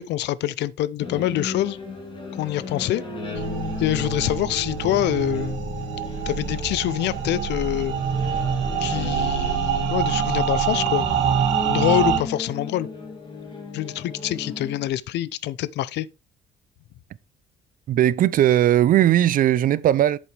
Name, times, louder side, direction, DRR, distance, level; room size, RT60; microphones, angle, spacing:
voice 1, 0.0-1.8 2.3-3.0 3.4-3.5 3.8-5.6 6.3-7.9 8.8-11.1 11.7-12.9 13.7-16.1, left 14 dB, 70° left, 0.5 m, -25 dB
sound 1, 1.0-14.9, left 2 dB, 30° left, 2.7 m, -35 dB
sound 2, 3.4-12.2, right 8 dB, 90° right, 2.1 m, -25 dB
voice 2, 17.9-20.2, right 12 dB, 50° right, 0.5 m, -18 dB
8.1 x 7.5 x 3.3 m
cardioid pair, 145°, 18 cm